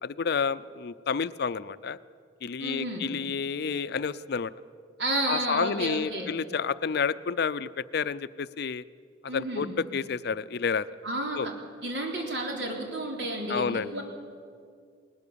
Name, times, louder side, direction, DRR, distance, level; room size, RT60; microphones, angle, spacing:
voice 1, 0.0-2.0 2.4-4.5 5.3-8.8 9.3-10.9 11.4-11.5 13.5-13.9, left 5 dB, 60° left, 16 dB, 0.5 m, -30 dB
voice 2, 2.6-3.0 5.0-6.3 9.3-9.7 11.0-11.5 11.8-14.0, right 1 dB, 75° right, 1 dB, 3.8 m, -31 dB
20.5 x 19.0 x 6.9 m, 2.2 s
head